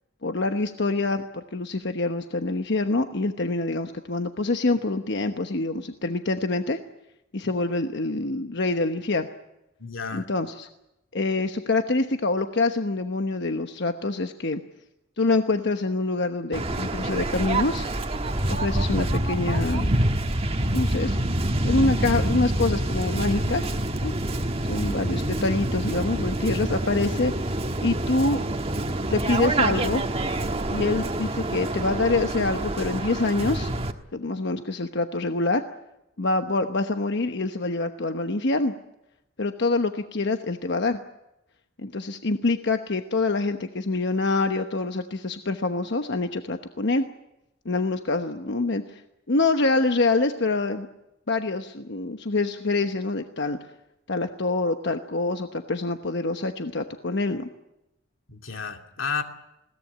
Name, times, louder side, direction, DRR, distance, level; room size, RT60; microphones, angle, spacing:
voice 1, 0.2-6.8 7.3-9.3 10.1-10.7 11.1-14.6 15.2-17.9 18.5-19.9 20.7-21.2 21.6-23.7 24.0-24.1 24.6-27.3 27.8-28.4 29.1-30.0 30.7-33.7 34.1-35.6 36.2-38.7 39.4-41.0 41.8-47.1 47.6-49.0 49.3-50.9 51.3-53.6 54.1-57.5, left 3 dB, 60° left, 7 dB, 1.1 m, -25 dB
voice 2, 9.8-10.3 58.3-59.2, left 5 dB, 90° left, 5 dB, 2.5 m, -33 dB
Waves surf, 16.5-33.9, right 1 dB, 30° right, 1.4 m, -26 dB
21.0 x 17.5 x 9.9 m, 0.90 s
head